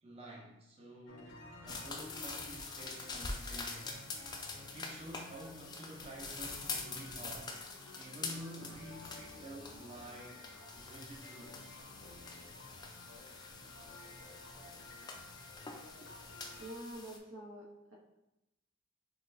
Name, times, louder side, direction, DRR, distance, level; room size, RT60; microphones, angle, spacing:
voice 1, 0.0-1.4 1.6-4.0 4.7-7.6 7.9-10.4 10.7-11.8, right 1 dB, 30° right, -3 dB, 0.5 m, -50 dB
sound 1, 1.1-16.7, left 2 dB, 65° left, 0.6 m, -54 dB
sound 2, 1.7-17.2, left 4 dB, 20° left, 0.4 m, -45 dB
voice 2, 16.6-17.9, right 1 dB, 85° right, -4 dB, 1.1 m, -47 dB
5.9 x 2.3 x 2.5 m, 0.93 s
head